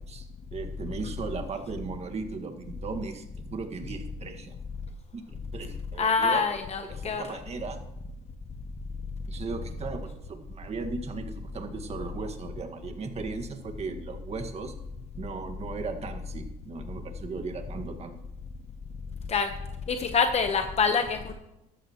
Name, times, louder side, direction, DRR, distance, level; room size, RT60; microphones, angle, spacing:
voice 1, 0.1-4.6 5.1-6.4 6.9-7.8 9.3-14.7 15.1-18.2, right 4 dB, 40° right, 6 dB, 1.8 m, -37 dB
voice 2, 6.0-7.4 19.3-19.5 19.9-21.3, left 5 dB, 40° left, 7 dB, 1.0 m, -26 dB
14.5 x 13.0 x 3.0 m, 0.90 s
cardioid pair, 110°, 17 cm